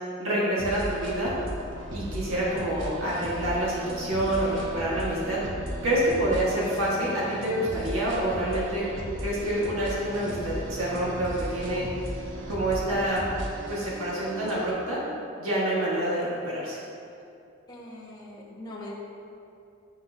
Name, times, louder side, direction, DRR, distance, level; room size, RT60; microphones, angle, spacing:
voice 1, 0.2-1.3 1.9-5.4 5.8-8.9 9.2-11.8 12.5-13.3 13.7-15.0 15.4-16.8, right 1 dB, 75° right, -6 dB, 1.6 m, -27 dB
sound 1, 0.6-14.7, equal, 60° right, 0.9 m, -37 dB
voice 2, 17.7-18.9, left 1 dB, 20° left, -6 dB, 1.1 m, -42 dB
9.5 x 5.8 x 2.7 m, 2.6 s
head